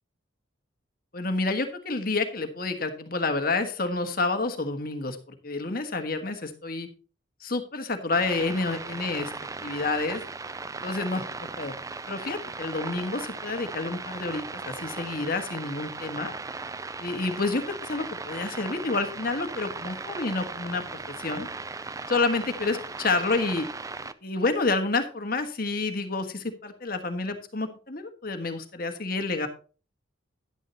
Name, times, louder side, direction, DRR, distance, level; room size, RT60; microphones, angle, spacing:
voice 1, 1.1-5.2 5.4-6.9 7.4-9.3 9.6-10.2 10.8-11.2 11.6-11.7 12.1-16.3 17.0-21.5 22.1-23.7 24.2-29.5, left 3 dB, 45° left, 7 dB, 1.5 m, -29 dB
sound 1, 8.1-24.1, right 4 dB, 15° right, 0.4 m, -37 dB
11.0 x 10.0 x 2.9 m, 0.36 s
head